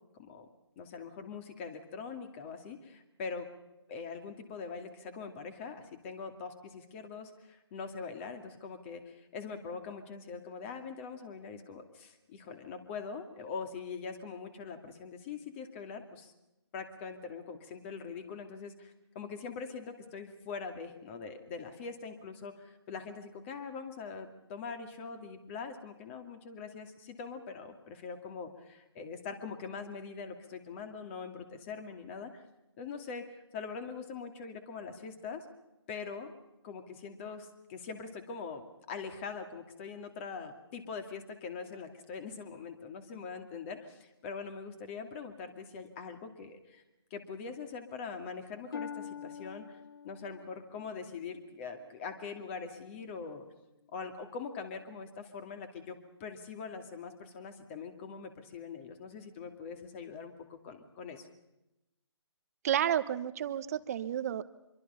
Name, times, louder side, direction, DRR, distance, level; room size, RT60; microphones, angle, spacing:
voice 1, 0.1-0.5 0.8-3.5 3.9-16.3 16.7-32.4 32.8-35.4 35.9-36.3 36.6-46.8 47.1-49.8 50.0-53.4 53.9-61.3, left 5 dB, 25° left, 7 dB, 2.4 m, -43 dB
Harp, 48.7-52.5 53.0-53.4 54.1-54.2, left 7 dB, 50° left, 1.1 m, -46 dB
voice 2, 62.6-64.4, right 10 dB, 35° right, 13 dB, 1.1 m, -31 dB
25.5 x 23.0 x 5.7 m, 0.94 s
figure-of-eight pair, 150°, 15 cm